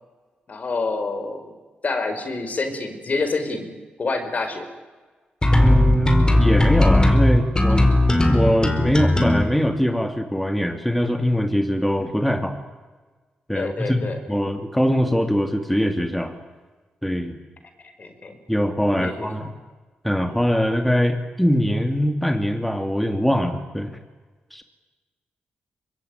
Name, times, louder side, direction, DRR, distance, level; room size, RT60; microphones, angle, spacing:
voice 1, 0.5-1.5 1.8-3.7 4.0-4.7 13.5-14.2 17.8-18.4 18.9-19.3, left 3 dB, 50° left, 7 dB, 5.1 m, -27 dB
sound 1, 5.4-9.4, left 1 dB, 25° left, 4.7 m, -17 dB
voice 2, 5.6-7.9 8.3-12.6 13.5-16.3 17.0-17.4 18.5-19.5 20.0-24.0 24.5-24.6, equal, 5° left, 6 dB, 2.6 m, -22 dB
24.5 x 21.0 x 9.8 m, 1.3 s
cardioid pair, 70°, 3 cm